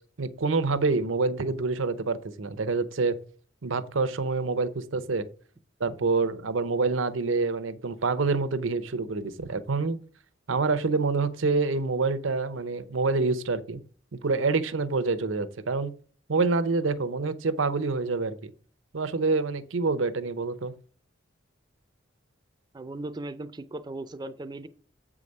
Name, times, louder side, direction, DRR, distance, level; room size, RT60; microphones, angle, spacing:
voice 1, 0.2-3.2 3.6-5.3 5.8-10.0 10.5-13.8 14.1-15.9 16.3-18.5 18.9-20.7, right 3 dB, 85° right, 0.7 m, -27 dB
voice 2, 22.7-24.7, right 2 dB, 20° right, 0.5 m, -37 dB
7.7 x 4.9 x 5.3 m
head